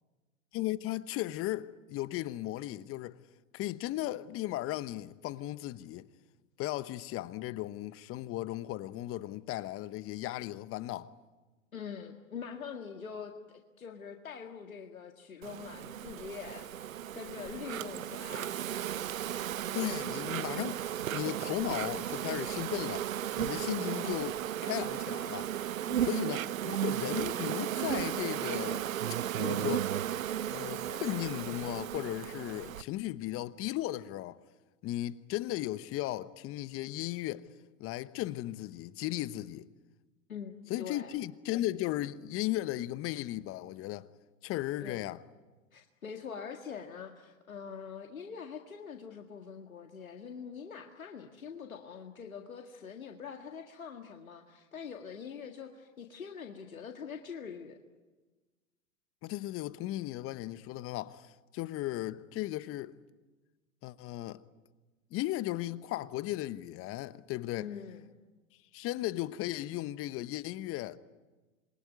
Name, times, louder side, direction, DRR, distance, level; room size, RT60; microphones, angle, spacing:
voice 1, 0.5-3.2 3.5-6.1 6.6-11.1 19.7-23.1 23.4-25.5 26.0-28.8 29.4-29.9 30.5-34.4 34.8-37.5 37.8-39.7 40.7-44.1 44.4-45.2 59.2-62.9 63.8-64.4 65.1-67.7 68.7-71.0, left 15 dB, 35° left, 1.1 m, -36 dB
voice 2, 11.7-18.6 25.9-26.5 40.3-41.1 44.8-45.1 45.7-57.8 67.6-68.1, left 6 dB, 85° left, 2.0 m, -44 dB
Insect, 15.4-32.8, right 11 dB, 75° right, 0.8 m, -35 dB
27.5 x 23.0 x 9.5 m
hypercardioid pair, 105°, 41 cm